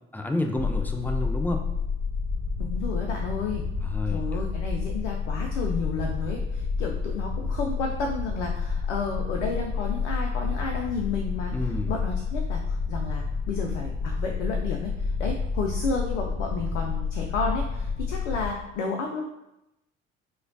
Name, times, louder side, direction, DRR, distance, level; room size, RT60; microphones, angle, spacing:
voice 1, 0.1-1.6 3.8-4.4 11.5-11.9, left 2 dB, 5° left, 4 dB, 0.3 m, -30 dB
sound 1, 0.6-18.5, left 5 dB, 55° left, 1.1 m, -29 dB
voice 2, 2.6-3.6 4.1-11.5 11.9-19.3, left 4 dB, 75° left, 1 dB, 0.5 m, -32 dB
4.8 x 2.2 x 2.7 m, 0.89 s
figure-of-eight pair, 60°, 36 cm